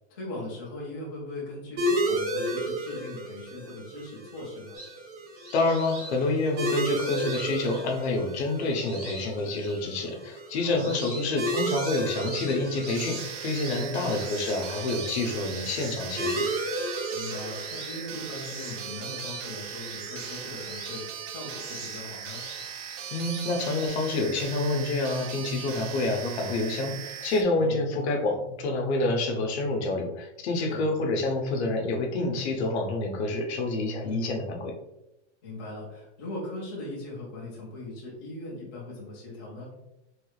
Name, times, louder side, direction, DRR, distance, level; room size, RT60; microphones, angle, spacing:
voice 1, 0.1-4.8 10.6-11.1 13.7-14.4 17.1-22.4 27.5-27.9 30.5-30.9 34.0-34.3 35.4-39.7, left 2 dB, 20° left, -6 dB, 0.3 m, -39 dB
sound 1, 1.8-20.9, right 1 dB, 70° right, 1.0 m, -34 dB
sound 2, 4.7-8.2 8.8-9.9 10.3-23.9, right 2 dB, 30° right, 0.8 m, -44 dB
voice 2, 5.5-16.5 23.1-34.7, left 2 dB, 60° left, 2 dB, 0.7 m, -28 dB
sound 3, 12.9-27.4, right 8 dB, 85° right, 0.6 m, -39 dB
3.2 x 3.1 x 2.3 m, 0.90 s
supercardioid pair, 180°, 36 cm